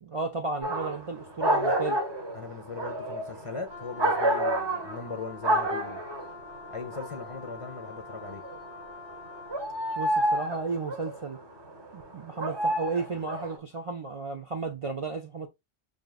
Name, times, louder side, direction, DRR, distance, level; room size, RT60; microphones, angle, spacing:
voice 1, 0.0-2.0 10.0-11.4 11.9-15.5, right 3 dB, 40° right, 0.5 m, -33 dB
sound 1, 0.6-1.1 1.4-5.2 5.4-6.3 6.7-8.7 9.1-11.2 12.0-13.6, right 1 dB, 25° right, 0.9 m, -28 dB
voice 2, 2.3-6.0 6.7-8.4, left 4 dB, 35° left, 0.6 m, -39 dB
Wind instrument woodwind instrument, 3.7-9.7, left 4 dB, 85° right, 1.5 m, -46 dB
6.2 x 2.7 x 2.3 m
omnidirectional pair, 1.1 m